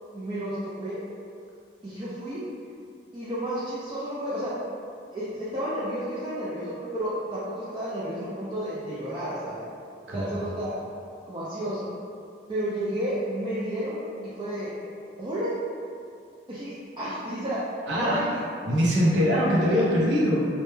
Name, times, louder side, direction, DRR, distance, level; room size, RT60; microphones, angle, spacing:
voice 1, 0.1-1.0 1.8-2.4 3.1-4.5 5.1-9.7 10.1-10.8 11.3-11.9 12.5-14.0 14.4-14.8 15.2-15.6 16.5-17.6 17.9-18.4 19.3-19.4, right 1 dB, 25° right, -10 dB, 0.3 m, -31 dB
voice 2, 10.1-10.4 17.9-18.2 18.6-20.4, equal, 85° right, -6 dB, 0.5 m, -23 dB
2.1 x 2.1 x 3.0 m, 2.4 s
head